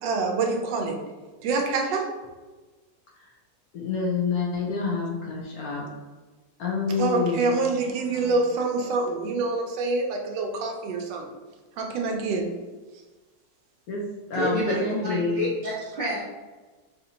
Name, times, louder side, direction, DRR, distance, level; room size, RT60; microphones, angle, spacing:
voice 1, 0.0-1.0 1.4-2.2 6.9-11.3 11.8-12.5, right 3 dB, 85° right, 2 dB, 1.3 m, -26 dB
voice 2, 3.7-5.8 6.6-7.5 13.9-14.0 14.3-15.4, left 4 dB, 65° left, -2 dB, 1.0 m, -27 dB
voice 3, 14.3-16.2, equal, 55° right, -8 dB, 0.6 m, -28 dB
4.1 x 2.5 x 2.8 m, 1.3 s
omnidirectional pair, 1.9 m